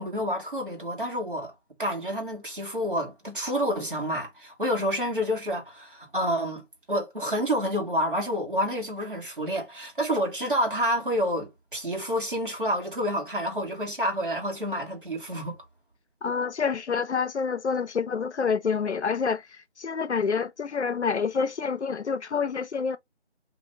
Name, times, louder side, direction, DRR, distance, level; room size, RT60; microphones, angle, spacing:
voice 1, 0.0-1.5 1.8-15.6, equal, 50° right, 1.2 m, -28 dB
voice 2, 16.2-23.0, left 5 dB, 75° left, 0.5 m, -27 dB
2.5 x 2.1 x 3.8 m
figure-of-eight pair, 175°, 35 cm